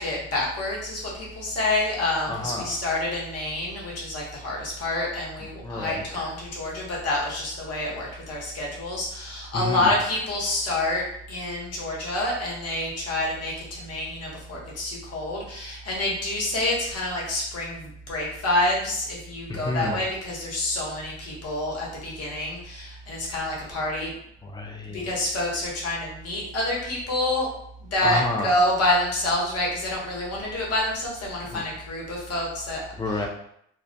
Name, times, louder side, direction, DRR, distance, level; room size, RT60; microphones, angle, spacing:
voice 1, 0.0-24.1 24.9-27.5 27.8-32.8, left 1 dB, 55° left, -4 dB, 0.9 m, -28 dB
voice 2, 2.3-2.7 5.6-6.3 9.5-9.9 19.5-20.0 24.4-25.1 28.0-28.6 31.4-31.6 33.0-33.3, left 2 dB, 15° left, 1 dB, 0.4 m, -30 dB
2.2 x 2.1 x 2.6 m, 0.72 s
cardioid pair, 90°, 30 cm